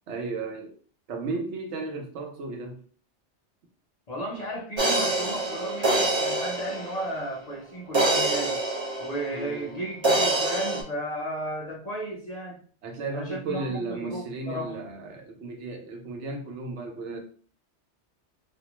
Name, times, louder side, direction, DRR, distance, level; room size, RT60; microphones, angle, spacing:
voice 1, 0.1-0.8 1.1-2.8 9.3-9.8 12.8-17.2, right 3 dB, 80° right, 1.0 m, -34 dB
voice 2, 4.1-8.6 9.0-12.6 13.1-14.8, right 1 dB, 45° left, 0.6 m, -34 dB
sound 1, 4.8-7.4 7.9-9.7 10.0-10.8, right 2 dB, 40° right, 0.4 m, -26 dB
2.4 x 2.1 x 2.9 m
omnidirectional pair, 1.2 m